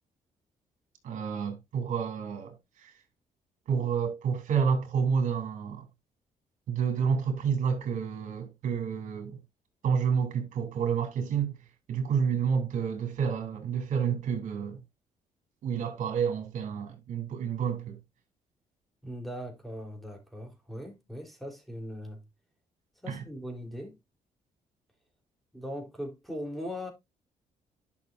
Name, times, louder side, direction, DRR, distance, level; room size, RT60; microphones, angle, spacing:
voice 1, 1.0-2.5 2.8-2.9 3.7-5.9 6.7-9.4 9.8-11.5 11.9-14.8 15.6-18.0 23.1-23.2, right 6 dB, 70° right, 3.2 m, -29 dB
voice 2, 19.0-22.2 23.0-24.0 25.5-26.9, equal, ahead, 3.8 m, -39 dB
11.0 x 6.2 x 2.6 m
cardioid pair, 80°, 13 cm